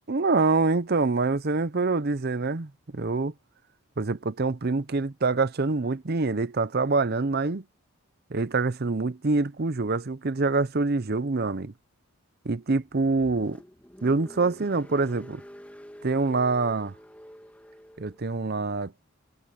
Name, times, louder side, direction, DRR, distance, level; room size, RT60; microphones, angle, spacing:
voice 1, 0.1-3.3 4.0-7.6 8.3-11.7 12.4-13.6 14.0-15.4 16.0-16.9 18.0-18.9, right 3 dB, 45° right, 0.7 m, -25 dB
Car, 12.8-18.3, equal, 5° left, 2.1 m, -47 dB
head